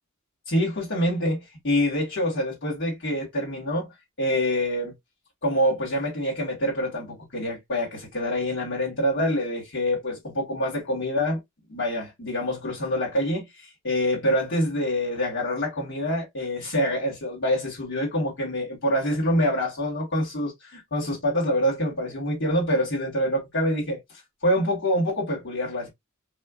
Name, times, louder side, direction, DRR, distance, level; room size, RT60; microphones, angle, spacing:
voice 1, 0.5-3.9 4.2-4.9 5.4-11.4 11.7-24.0 24.4-25.9, equal, 60° left, 1.6 m, -26 dB
4.3 x 2.2 x 2.3 m
head